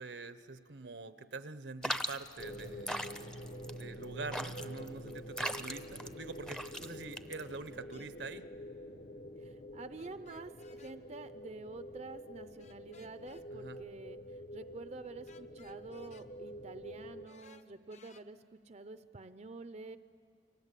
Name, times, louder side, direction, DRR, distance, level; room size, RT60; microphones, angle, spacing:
voice 1, 0.0-3.0 3.7-8.4 13.5-13.8, right 3 dB, 75° right, 12 dB, 0.9 m, -45 dB
sound 1, 1.8-7.8, equal, 5° left, 0.7 m, -40 dB
sound 2, 2.4-17.3, equal, 60° left, 1.5 m, -47 dB
sound 3, 7.9-8.1 9.9-11.0 12.6-13.5 15.3-16.3 17.3-18.2, left 5 dB, 40° left, 1.0 m, -60 dB
voice 2, 9.4-20.0, right 3 dB, 40° right, 11 dB, 0.6 m, -48 dB
29.5 x 23.5 x 8.3 m, 2.2 s
head